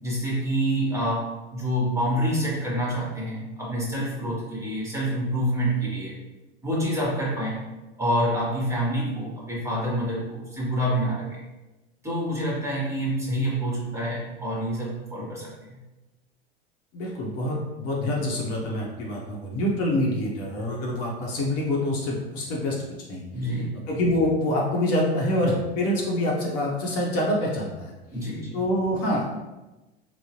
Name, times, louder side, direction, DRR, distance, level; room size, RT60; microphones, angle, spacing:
voice 1, 0.0-6.2 6.6-7.6 8.0-11.4 12.0-15.5 23.3-23.8 28.1-28.6, equal, 10° right, -5 dB, 1.1 m, -27 dB
voice 2, 16.9-22.8 23.1-27.9 28.5-29.3, left 1 dB, 50° left, -2 dB, 0.9 m, -26 dB
3.6 x 2.0 x 2.9 m, 1.1 s
hypercardioid pair, 85°, 31 cm